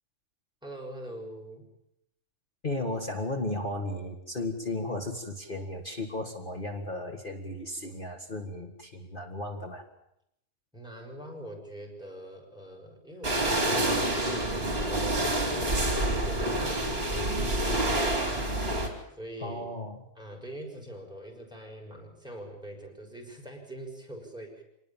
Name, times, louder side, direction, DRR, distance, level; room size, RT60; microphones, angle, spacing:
voice 1, 0.6-1.6 10.7-18.8 19.1-19.7 20.2-24.6, right 1 dB, 5° right, 0 dB, 6.3 m, -44 dB
voice 2, 2.6-9.8 19.4-20.0, left 2 dB, 35° left, 3 dB, 2.1 m, -35 dB
sound 1, 13.2-18.9, right 1 dB, 40° right, 4.3 m, -27 dB
26.0 x 20.0 x 7.3 m, 0.78 s
omnidirectional pair, 1.5 m